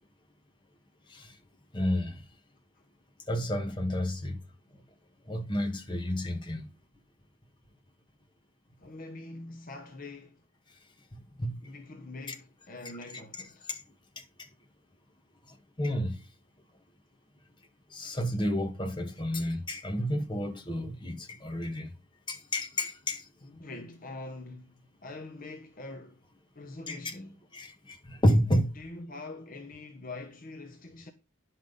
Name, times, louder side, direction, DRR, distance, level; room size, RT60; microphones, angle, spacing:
voice 1, 1.7-2.2 3.3-4.4 5.3-6.7 11.4-11.6 13.7-13.8 15.8-16.2 17.9-21.9 22.3-23.2 26.9-27.0 27.5-28.7, equal, 20° left, 1.6 m, -30 dB
voice 2, 8.8-10.4 11.6-13.7 21.6-21.7 23.4-26.3 26.5-27.4 28.7-31.1, left 2 dB, 40° left, 1.1 m, -44 dB
10.0 x 5.8 x 5.2 m
head